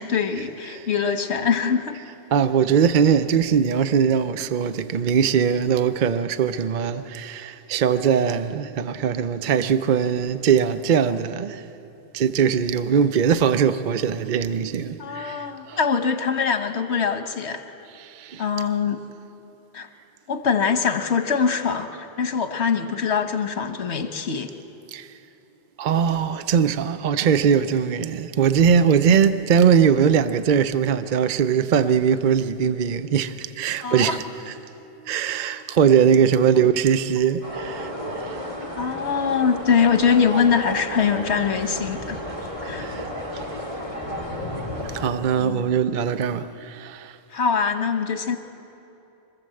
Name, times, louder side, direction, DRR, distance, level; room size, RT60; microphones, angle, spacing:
voice 1, 0.0-2.0 15.0-17.6 18.4-19.0 19.7-19.9 20.3-24.5 33.8-34.2 38.8-42.2 42.6-42.9 45.4-45.7 47.3-48.4, left 6 dB, 80° left, 1.4 m, -23 dB
voice 2, 2.3-11.7 12.1-15.8 17.9-18.4 24.9-25.1 25.8-34.5 35.0-38.4 42.6-43.4 44.7-47.2, right 7 dB, 55° right, 0.7 m, -21 dB
sound 1, 37.4-45.1, equal, 30° right, 3.0 m, -32 dB
24.5 x 15.0 x 7.7 m
omnidirectional pair, 1.1 m